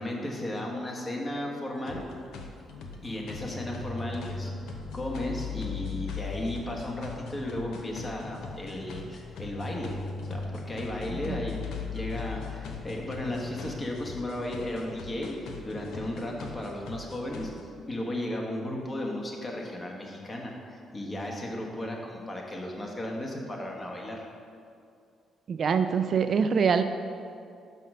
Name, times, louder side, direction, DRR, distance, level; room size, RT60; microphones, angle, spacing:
voice 1, 0.0-2.0 3.0-9.9 10.3-11.6 11.9-15.3 15.6-17.5 17.9-24.3, left 1 dB, 30° left, 0 dB, 1.3 m, -35 dB
sound 1, 1.8-17.6, left 3 dB, 80° left, 0.7 m, -44 dB
sound 2, 3.3-15.3, left 6 dB, 60° left, 0.3 m, -39 dB
voice 2, 11.1-11.5 25.5-26.8, right 6 dB, 50° right, 9 dB, 0.3 m, -25 dB
6.2 x 5.7 x 5.5 m, 2.4 s
cardioid pair, 90°, 0 cm